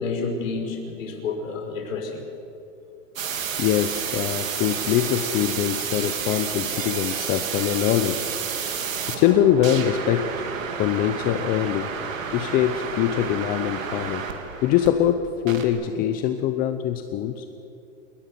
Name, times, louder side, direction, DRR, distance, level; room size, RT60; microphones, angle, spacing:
voice 1, 0.0-2.2, left 4 dB, 75° left, 2 dB, 5.9 m, -29 dB
sound 1, 3.2-14.9 15.5-15.7, right 7 dB, 80° right, 3.6 m, -30 dB
voice 2, 3.6-8.3 9.1-10.3 10.8-11.9 12.3-14.2 14.6-17.5, left 11 dB, 20° left, 9 dB, 0.7 m, -23 dB
27.5 x 19.0 x 6.9 m, 2.8 s
hypercardioid pair, 145°, 39 cm